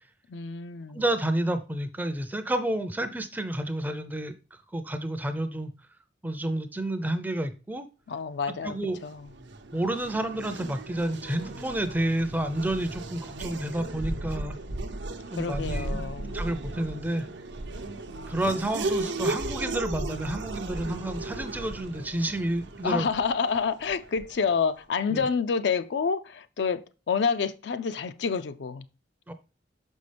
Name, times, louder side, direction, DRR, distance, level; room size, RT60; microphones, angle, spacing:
voice 1, 0.3-1.0 8.1-8.8 9.0-9.3 15.3-16.4 22.8-28.8, left 5 dB, 70° left, 0.4 m, -28 dB
voice 2, 0.9-5.7 6.2-7.8 8.6-9.0 9.7-14.6 15.3-16.0 16.3-17.3 18.3-23.1 25.1-25.3 29.3-29.4, right 1 dB, 10° right, 0.4 m, -30 dB
Race car auto racing / Accelerating revving vroom, 8.9-24.5, right 2 dB, 75° right, 0.7 m, -36 dB
5.9 x 5.3 x 3.3 m
head